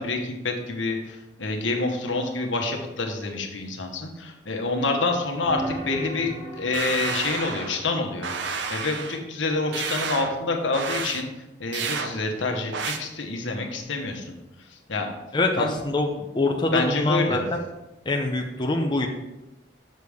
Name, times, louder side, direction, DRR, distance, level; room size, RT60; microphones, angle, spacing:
voice 1, 0.0-11.3 11.6-15.1 15.6-15.8 16.7-17.4, left 3 dB, 80° left, 3 dB, 1.2 m, -27 dB
sound 1, 5.3-9.1 13.6-13.8, right 1 dB, 40° right, 2.2 m, -38 dB
sound 2, 6.7-7.8 8.2-9.2 9.7-10.4 10.7-11.2 11.7-12.1 12.7-13.0, right 5 dB, 65° right, 0.7 m, -30 dB
voice 2, 15.3-17.6 18.1-19.1, left 2 dB, 25° left, 2 dB, 0.5 m, -24 dB
6.6 x 6.5 x 3.5 m, 0.96 s
head